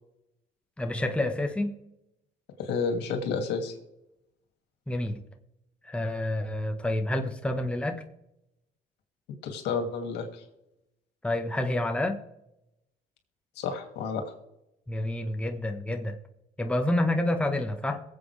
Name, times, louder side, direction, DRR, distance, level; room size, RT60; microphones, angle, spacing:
voice 1, 0.8-1.7 4.9-5.2 5.8-8.0 11.2-12.2 14.9-16.2 16.6-18.0, left 1 dB, 5° left, 5 dB, 1.3 m, -28 dB
voice 2, 2.6-3.7 9.4-10.4 13.6-14.2, left 5 dB, 85° left, 5 dB, 2.4 m, -30 dB
22.5 x 7.9 x 3.4 m, 0.86 s
cardioid pair, 110°, 17 cm